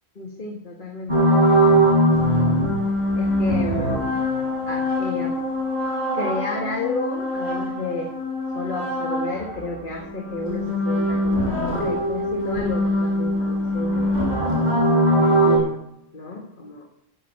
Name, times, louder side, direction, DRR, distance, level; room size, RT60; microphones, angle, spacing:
voice 1, 0.2-1.2 2.2-2.6 3.2-4.2 4.7-5.3 6.1-8.1 8.5-14.2 15.2-15.8 16.1-16.8, left 2 dB, 55° left, 1 dB, 2.0 m, -32 dB
sound 1, 1.1-9.7 10.0-15.6, equal, 45° right, 6.3 m, -22 dB
12.5 x 8.9 x 8.2 m, 0.79 s
omnidirectional pair, 1.1 m